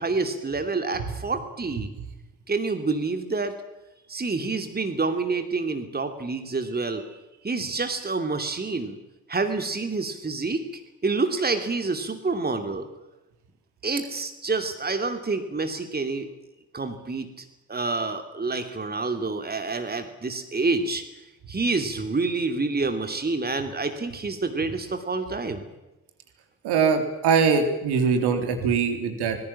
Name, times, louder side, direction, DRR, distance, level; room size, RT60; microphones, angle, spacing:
voice 1, 0.0-1.9 2.5-3.5 4.1-7.0 7.4-9.0 9.3-10.6 11.0-12.9 13.8-16.3 16.7-21.0 21.5-25.6, right 3 dB, 20° right, 7 dB, 2.9 m, -28 dB
voice 2, 26.6-29.4, right 5 dB, 60° right, 6 dB, 3.6 m, -22 dB
25.0 x 20.5 x 7.5 m, 1.0 s
figure-of-eight pair, 45°, 45 cm